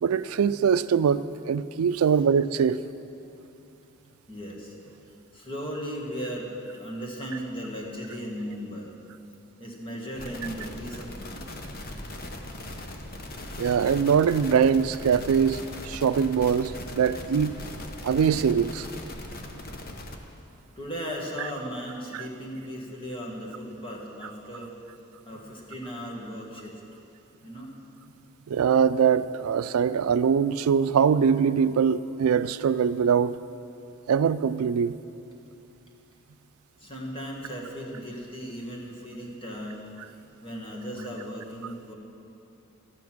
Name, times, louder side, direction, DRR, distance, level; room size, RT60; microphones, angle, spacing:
voice 1, 0.0-2.8 13.6-17.5 18.0-18.9 28.5-33.4 34.1-34.9, right 7 dB, 85° right, 0.4 m, -23 dB
voice 2, 4.3-4.8 5.1-8.9 9.6-11.6 20.8-24.7 25.2-26.8 27.4-27.7 36.8-39.9 40.4-41.9, equal, 25° left, 1.7 m, -37 dB
sound 1, 10.2-20.2, left 1 dB, 45° left, 0.9 m, -39 dB
13.0 x 9.5 x 6.0 m
head